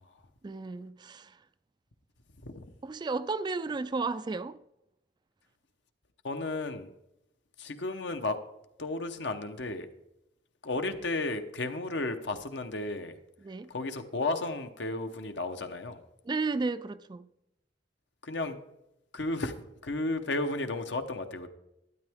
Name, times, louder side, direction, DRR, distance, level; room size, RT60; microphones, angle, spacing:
voice 1, 0.4-1.4 2.8-4.6 13.4-13.7 16.2-17.3, right 3 dB, 25° right, 0.3 m, -33 dB
voice 2, 6.2-6.9 7.6-8.4 8.8-9.9 10.6-13.1 13.7-16.0 18.2-18.6 19.1-19.5 19.8-21.5, left 2 dB, 75° left, 0.9 m, -33 dB
12.5 x 8.9 x 3.6 m
head